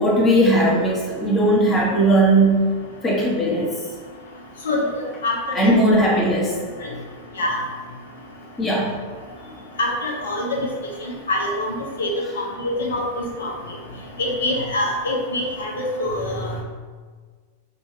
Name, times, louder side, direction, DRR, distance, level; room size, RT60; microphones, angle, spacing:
voice 1, 0.0-2.6 3.0-3.7 5.5-6.5 8.6-8.9 16.2-16.6, right 1 dB, 20° left, -4 dB, 1.2 m, -18 dB
voice 2, 5.2-5.7 7.4-7.6 9.8-10.7 11.3-11.7 12.0-12.1 12.6-13.5 14.2-16.5, left 1 dB, 70° left, -1 dB, 0.9 m, -24 dB
5.4 x 2.7 x 2.9 m, 1.5 s
figure-of-eight pair, 90°, 0 cm